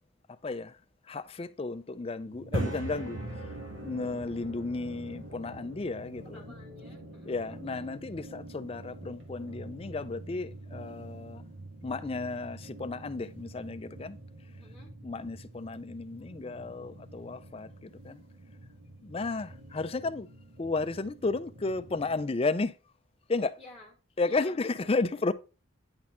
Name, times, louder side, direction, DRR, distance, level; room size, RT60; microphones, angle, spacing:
voice 1, 0.4-0.8 1.1-3.2 3.8-6.4 7.3-11.5 11.8-14.2 15.0-18.2 19.0-20.3 20.6-22.7 23.3-23.6 24.2-25.3, left 3 dB, 30° left, 0.4 m, -33 dB
sound 1, 2.3-22.2, right 1 dB, 65° right, 1.5 m, -43 dB
voice 2, 6.3-7.4 14.6-14.9 23.6-23.9 24.2-24.9, left 2 dB, ahead, 1.1 m, -51 dB
9.5 x 4.2 x 4.3 m
head